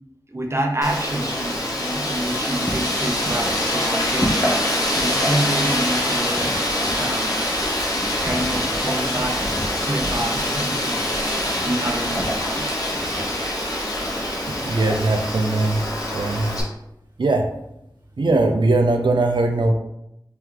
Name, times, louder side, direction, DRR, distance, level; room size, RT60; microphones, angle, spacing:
voice 1, 0.3-6.5 6.9-7.4 8.2-9.4 9.8-11.0 11.6-12.7, right 1 dB, 35° right, 2 dB, 0.7 m, -27 dB
Wind, 0.8-16.6, left 1 dB, 50° left, 1.0 m, -24 dB
voice 2, 14.6-15.8 16.1-16.6 17.2-17.5 18.2-19.7, right 2 dB, 75° right, 4 dB, 0.4 m, -20 dB
3.4 x 3.0 x 3.7 m, 0.83 s
wide cardioid pair, 55°, 8 cm